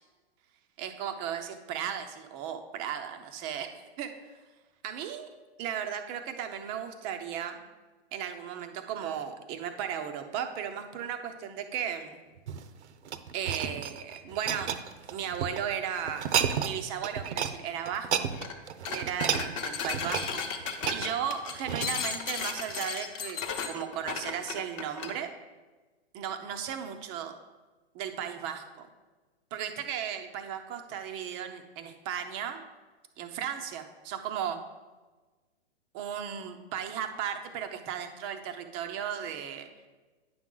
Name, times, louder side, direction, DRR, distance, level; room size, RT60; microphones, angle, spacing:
voice 1, 0.8-4.1 4.8-7.6 8.1-12.2 13.3-14.7 15.1-16.2 16.6-18.3 18.9-23.4 23.7-25.3 26.1-27.3 27.9-28.9 29.5-32.6 33.2-34.6 35.9-39.7, right 8 dB, 20° right, 6 dB, 0.3 m, -35 dB
sound 1, 12.4-15.6 16.1-16.8 17.0-17.5 17.8-22.1 22.7-22.8, right 8 dB, 90° right, 0.6 m, -32 dB
sound 2, 18.3-18.6 18.8-25.2, left 6 dB, 30° left, 0.7 m, -35 dB
9.3 x 6.2 x 3.7 m, 1.3 s
hypercardioid pair, 140°, 33 cm